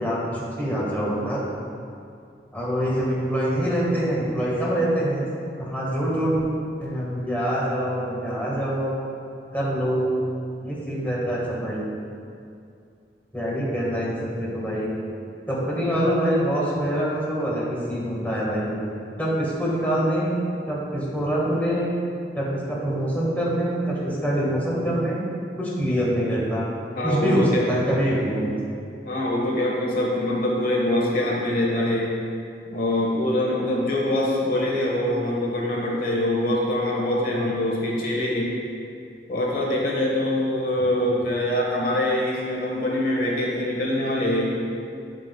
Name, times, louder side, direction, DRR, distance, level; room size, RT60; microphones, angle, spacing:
voice 1, 0.0-1.4 2.5-5.2 5.6-6.4 6.8-8.9 9.5-10.1 10.6-11.9 13.3-14.9 15.5-18.7 19.2-20.4 20.7-21.9 22.3-25.2 25.6-26.7 27.0-28.5 40.8-41.3, equal, 10° left, -6 dB, 1.4 m, -25 dB
voice 2, 26.9-27.7 28.2-28.3 29.0-32.1 32.7-38.5 39.3-44.5, left 1 dB, 50° left, -3 dB, 1.2 m, -24 dB
10.0 x 7.8 x 2.2 m, 2.4 s
head